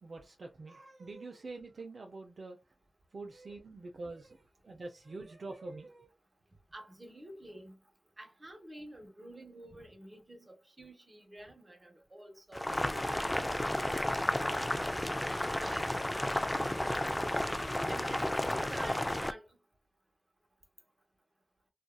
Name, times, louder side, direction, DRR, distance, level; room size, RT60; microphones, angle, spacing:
voice 1, 0.0-2.6 3.1-6.1, right 3 dB, 70° right, 0.5 m, -45 dB
voice 2, 6.7-7.8 8.2-12.6 13.0-13.5 15.3-15.9 17.9-19.5, right 1 dB, 35° right, 1.1 m, -48 dB
Boiling, 12.5-19.3, left 1 dB, 15° left, 0.3 m, -32 dB
2.6 x 2.4 x 2.2 m
cardioid pair, 45°, 0 cm